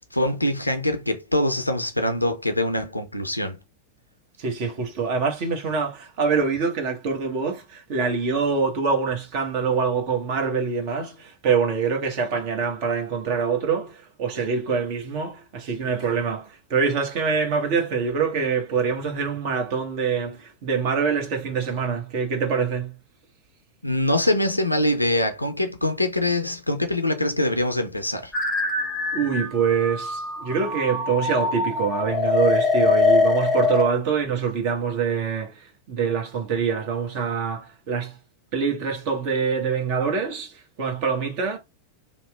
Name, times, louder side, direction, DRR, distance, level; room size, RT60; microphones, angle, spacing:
voice 1, 0.0-3.6 23.8-28.3, left 1 dB, 85° left, 0.5 m, -24 dB
voice 2, 4.4-22.9 29.1-38.2 38.5-41.6, right 5 dB, 45° right, 1.0 m, -25 dB
sound 1, 28.3-33.9, left 3 dB, 5° left, 0.8 m, -23 dB
2.9 x 2.1 x 3.4 m
figure-of-eight pair, 90°, 0 cm